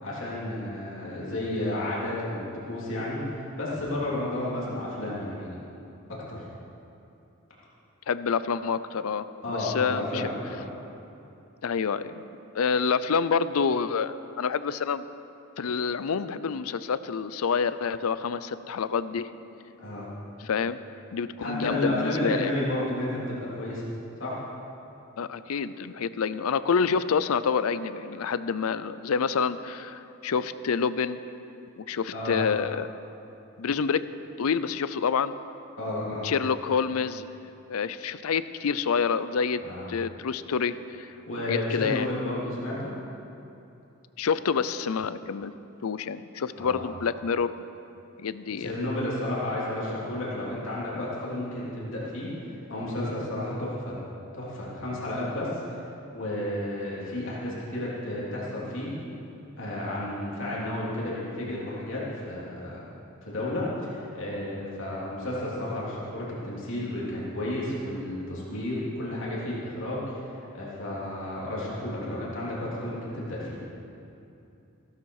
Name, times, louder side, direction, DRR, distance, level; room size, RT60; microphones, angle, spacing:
voice 1, 0.0-5.6 6.3-6.4 9.4-10.7 19.8-20.1 21.4-23.8 24.2-24.4 32.1-32.4 35.8-36.3 39.6-40.0 41.3-42.9 46.6-46.9 48.6-52.3 52.7-54.0 54.3-55.6 56.1-58.9 59.6-62.8 63.2-73.6, left 1 dB, 60° left, -7 dB, 3.2 m, -32 dB
voice 2, 8.1-10.2 11.6-12.2 12.5-15.1 15.6-19.3 20.4-20.8 21.1-22.5 25.2-31.2 31.8-32.9 33.6-34.0 34.4-35.3 36.2-37.2 37.7-39.6 39.9-41.1 41.5-42.1 44.2-45.5 45.8-47.5 48.2-48.7, left 6 dB, 85° left, 14 dB, 0.5 m, -27 dB
15.5 x 12.5 x 4.8 m, 2.8 s
head